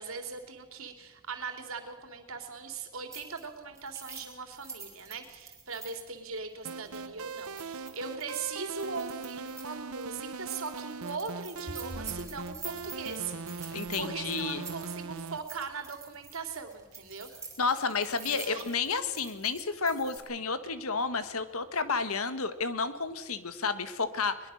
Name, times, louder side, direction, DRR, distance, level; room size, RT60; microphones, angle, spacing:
voice 1, 0.0-17.3 18.2-18.8, right 5 dB, 70° right, 6 dB, 3.1 m, -40 dB
sound 1, 3.1-3.5 3.7-9.8 10.0-10.2 10.5-20.2, right 5 dB, 15° right, 4.2 m, -47 dB
sound 2, 6.6-15.4, right 4 dB, 85° right, 1.0 m, -40 dB
sound 3, 10.8-22.1, right 1 dB, 45° right, 2.0 m, -55 dB
voice 2, 13.7-14.6 17.6-24.5, left 4 dB, 80° left, 11 dB, 1.6 m, -31 dB
22.0 x 21.5 x 6.5 m, 1.1 s
head